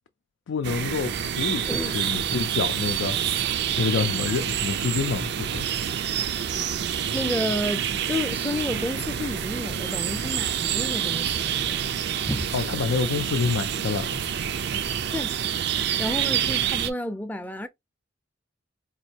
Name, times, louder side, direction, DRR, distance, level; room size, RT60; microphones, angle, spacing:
voice 1, 0.5-3.2 3.8-5.6 12.5-14.2, left 5 dB, 80° left, 0.4 m, -27 dB
sound 1, 0.6-16.9, right 9 dB, 60° right, 0.5 m, -27 dB
voice 2, 1.6-2.0 6.6-6.7 7.1-11.9 12.2-12.5 15.1-15.4 16.0-17.7, left 1 dB, 10° left, 0.5 m, -31 dB
sound 2, 1.9-3.6 5.6-7.0 9.1-10.6 12.5-14.3, right 8 dB, 85° right, 1.3 m, -44 dB
4.2 x 2.6 x 2.8 m
head